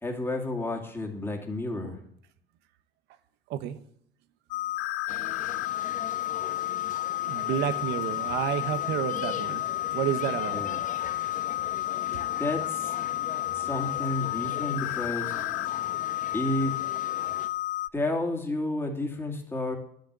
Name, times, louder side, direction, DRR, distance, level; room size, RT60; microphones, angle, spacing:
voice 1, 0.0-2.0 10.5-10.8 12.3-12.9 13.5-15.3 16.3-16.7 17.9-19.8, left 2 dB, 15° left, 1 dB, 2.2 m, -31 dB
sound 1, 4.5-17.9, left 15 dB, 85° left, 0.4 m, -31 dB
sound 2, 5.1-17.5, left 7 dB, 50° left, 1.1 m, -42 dB
voice 2, 7.2-9.6 9.9-10.6, right 11 dB, 85° right, 12 dB, 0.9 m, -30 dB
10.5 x 6.5 x 8.0 m, 0.67 s
cardioid pair, 110°, 17 cm